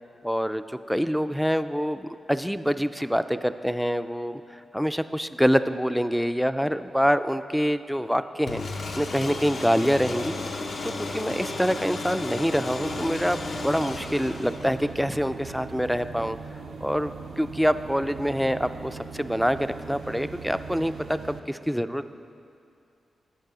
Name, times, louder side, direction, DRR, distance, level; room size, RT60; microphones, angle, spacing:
voice 1, 0.2-8.6 8.9-10.4 10.8-16.4 16.8-22.0, equal, ahead, 12 dB, 0.3 m, -26 dB
sound 1, 8.5-15.0, left 2 dB, 70° left, 0.7 m, -33 dB
sound 2, 12.8-21.4, right 5 dB, 80° right, 0.4 m, -40 dB
9.1 x 6.1 x 4.8 m, 2.5 s
cardioid pair, 55°, 0 cm